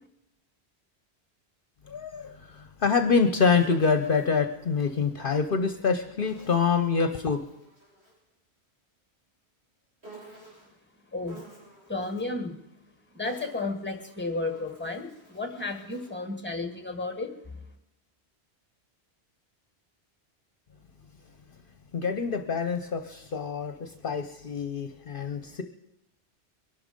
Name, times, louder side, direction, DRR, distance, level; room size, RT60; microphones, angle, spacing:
voice 1, 1.9-7.4 21.9-25.6, left 5 dB, 60° left, 8 dB, 0.9 m, -26 dB
Insect, 3.4-5.1 6.2-8.3 10.0-10.8 11.2-12.4 13.0-16.3, right 2 dB, 80° right, 6.9 m, -53 dB
voice 2, 11.9-12.6 13.1-17.5, left 3 dB, 10° left, 6 dB, 1.7 m, -33 dB
22.5 x 11.5 x 5.2 m, 0.83 s
omnidirectional pair, 1.1 m